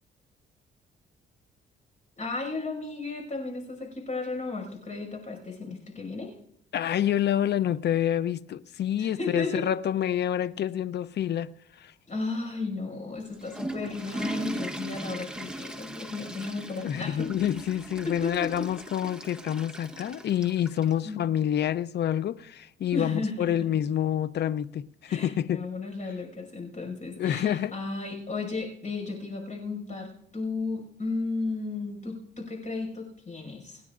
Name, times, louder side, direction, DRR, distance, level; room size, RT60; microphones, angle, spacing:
voice 1, 2.2-6.3 9.0-9.7 12.1-17.3 18.0-18.7 21.0-21.2 22.9-23.5 25.1-33.8, left 3 dB, 40° left, 5.9 m, -34 dB
voice 2, 6.7-11.5 11.8-11.9 16.8-25.7 27.2-27.7, left 10 dB, 60° left, 0.7 m, -27 dB
Water / Toilet flush, 13.2-21.0, right 1 dB, 5° right, 1.1 m, -39 dB
27.5 x 9.5 x 2.5 m
cardioid pair, 90°, 20 cm